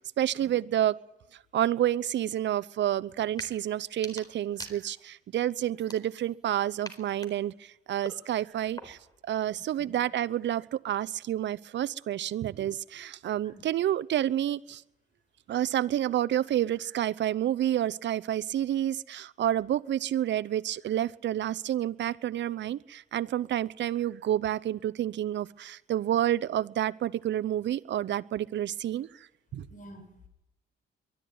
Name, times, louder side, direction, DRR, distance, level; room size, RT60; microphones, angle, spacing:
voice 1, 0.2-0.9 1.5-9.0 9.2-14.8 15.5-29.1 29.5-29.7, right 12 dB, 65° right, 0.8 m, -29 dB
sound 1, 3.2-3.5 3.9-5.2 5.7-6.4 6.8-9.2, left 1 dB, 20° left, 4.2 m, -46 dB
voice 2, 29.7-30.3, equal, 40° left, 7.7 m, -49 dB
23.0 x 12.5 x 9.6 m
cardioid pair, 90°, 20 cm